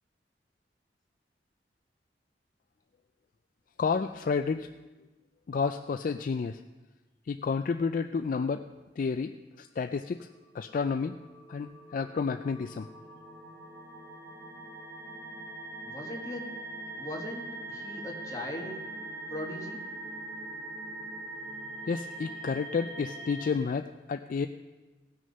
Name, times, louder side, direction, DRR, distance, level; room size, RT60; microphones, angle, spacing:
voice 1, 3.8-4.7 5.5-6.6 7.3-8.6 9.0-10.3 10.5-11.2 11.5-12.9 21.9-24.5, left 5 dB, 50° left, 7 dB, 0.3 m, -30 dB
sound 1, 10.3-23.5, right 2 dB, 60° right, 3.9 m, -42 dB
voice 2, 15.9-16.4 17.0-18.8 19.3-19.8, left 1 dB, 20° left, -2 dB, 1.8 m, -39 dB
17.5 x 6.3 x 5.4 m, 1.2 s
head